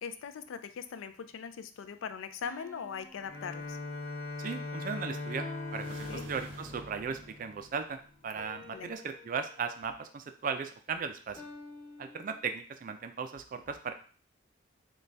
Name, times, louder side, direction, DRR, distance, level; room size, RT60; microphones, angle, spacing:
voice 1, 0.0-3.8 6.1-6.3 8.7-8.9, left 6 dB, 85° left, 11 dB, 0.4 m, -40 dB
sound 1, 2.4-4.2 5.4-6.8 8.4-9.9 11.4-12.4, left 2 dB, 15° left, 0.6 m, -51 dB
Bowed string instrument, 3.2-8.1, left 2 dB, 60° left, 1.0 m, -40 dB
voice 2, 4.4-11.4 12.0-13.9, right 5 dB, 45° right, 8 dB, 0.3 m, -37 dB
sound 2, 5.7-8.3, right 2 dB, 90° right, 0.8 m, -51 dB
4.0 x 2.2 x 3.2 m, 0.42 s
head